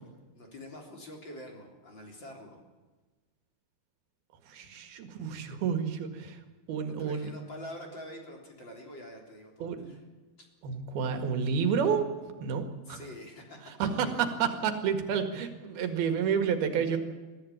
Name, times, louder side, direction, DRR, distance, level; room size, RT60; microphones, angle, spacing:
voice 1, 0.3-2.6 6.9-10.0 10.4-10.5 12.9-14.3 15.1-15.2 15.8-15.9 16.9-17.0, left 1 dB, 30° left, 1 dB, 4.0 m, -46 dB
voice 2, 4.5-6.4 6.7-7.3 9.6-9.9 10.6-12.1 12.4-13.0 13.8-17.0, right 7 dB, 85° right, 7 dB, 3.8 m, -30 dB
22.0 x 14.5 x 8.8 m, 1.3 s
omnidirectional pair, 4.3 m